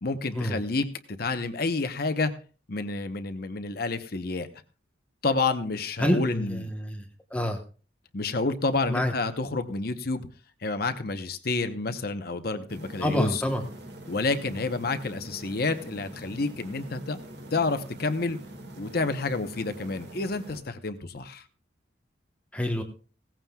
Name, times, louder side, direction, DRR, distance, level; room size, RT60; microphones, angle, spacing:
voice 1, 0.0-2.3 2.7-4.5 5.2-6.7 8.1-10.3 10.6-13.4 14.1-17.2 17.5-18.4 18.8-21.4, left 3 dB, 50° left, 9 dB, 0.9 m, -29 dB
voice 2, 6.0-7.0 7.3-7.6 8.9-9.1 13.0-13.6 22.5-22.8, left 1 dB, 5° left, 3 dB, 1.0 m, -27 dB
sound 1, 12.7-20.6, right 1 dB, 60° right, 2.0 m, -44 dB
17.5 x 15.0 x 2.3 m, 0.37 s
head